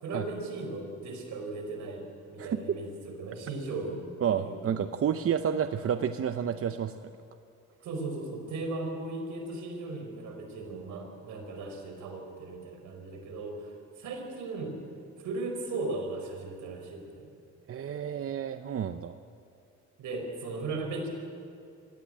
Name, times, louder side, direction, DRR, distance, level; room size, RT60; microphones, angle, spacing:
voice 1, 0.0-4.7 7.8-14.8 15.2-17.3 20.0-21.1, right 2 dB, 80° right, 4 dB, 4.8 m, -37 dB
voice 2, 4.2-7.1 17.7-19.2, right 8 dB, 50° right, 9 dB, 0.8 m, -30 dB
23.0 x 17.0 x 8.9 m, 2.5 s
cardioid pair, 90°, 30 cm